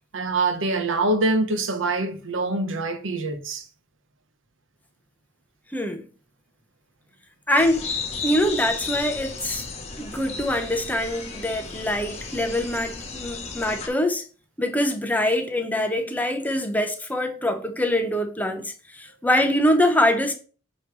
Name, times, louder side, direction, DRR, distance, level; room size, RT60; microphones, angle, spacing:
voice 1, 0.1-3.7, right 2 dB, 80° right, 1.0 m, -24 dB
voice 2, 5.7-6.1 7.5-7.8 8.2-9.7 10.0-14.3 14.6-20.3, left 1 dB, 10° left, 0.8 m, -24 dB
sound 1, 7.6-13.9, left 4 dB, 35° left, 1.2 m, -33 dB
8.3 x 3.1 x 4.6 m
head